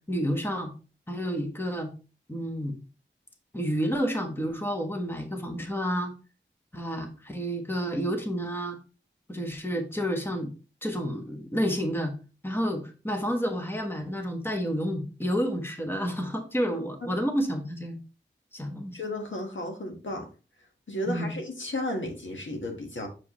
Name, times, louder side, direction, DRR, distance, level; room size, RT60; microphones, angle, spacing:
voice 1, 0.1-0.7 1.1-1.9 2.3-2.8 3.5-6.1 6.7-8.8 9.3-10.5 10.8-12.1 12.4-18.0 18.5-19.0 21.1-21.3, equal, 10° left, 4 dB, 1.3 m, -30 dB
voice 2, 18.9-20.3 20.9-23.1, left 1 dB, 75° left, 2 dB, 1.5 m, -33 dB
7.2 x 4.7 x 3.0 m, 0.34 s
wide cardioid pair, 55°, 20 cm